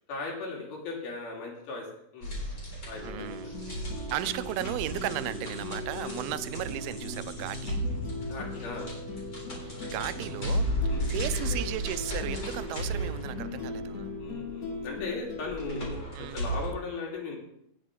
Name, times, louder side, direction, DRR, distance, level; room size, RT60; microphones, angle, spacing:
voice 1, 0.1-1.9 2.1-2.4 2.9-3.5 5.9-6.2 8.3-8.9 10.9-11.1 14.2-17.4, left 3 dB, 75° left, -1 dB, 4.6 m, -38 dB
sound 1, 2.2-16.7, equal, 25° left, 3.9 m, -35 dB
sound 2, 3.0-16.0, left 2 dB, 60° left, 0.9 m, -39 dB
voice 2, 3.0-7.9 9.6-14.2 16.2-16.4, right 14 dB, 85° right, 14 dB, 2.5 m, -36 dB
18.5 x 7.4 x 3.7 m, 0.74 s
omnidirectional pair, 4.3 m